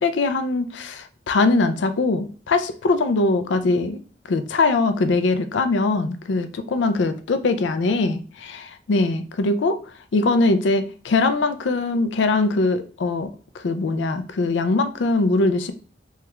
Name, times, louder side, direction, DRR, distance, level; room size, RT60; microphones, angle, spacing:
voice 1, 0.0-4.0 4.3-9.8 10.1-13.3 13.5-15.7, left 3 dB, 75° left, 0.4 m, -21 dB
3.3 x 2.3 x 2.9 m
head